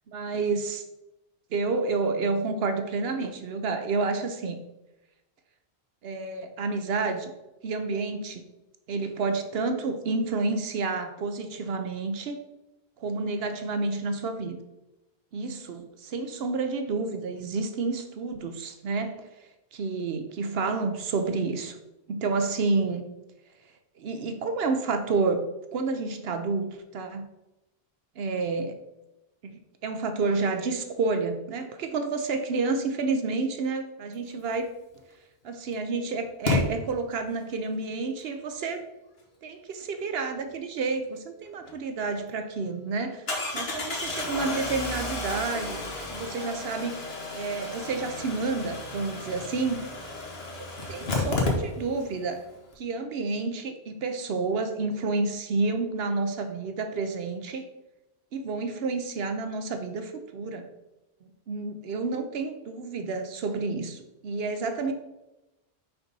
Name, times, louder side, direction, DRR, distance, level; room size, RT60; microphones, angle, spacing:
voice 1, 0.1-0.8 1.5-4.6 6.0-7.3 7.6-8.4 8.9-12.4 13.0-14.6 15.3-19.3 19.7-21.8 22.1-23.0 24.0-27.3 28.2-28.8 29.4-34.7 35.4-38.8 39.4-43.2 43.5-45.8 46.1-47.1 47.3-49.9 50.5-52.4 52.8-57.6 58.3-60.7 61.5-64.9, right 3 dB, 75° right, 7 dB, 0.9 m, -29 dB
Engine starting, 35.0-35.1 36.5-36.6 41.7-41.8 42.1-42.2 43.3-52.1 52.4-52.5 52.7-52.8, left 3 dB, 70° left, 1.5 m, -32 dB
5.8 x 5.3 x 4.0 m, 0.97 s
omnidirectional pair, 1.1 m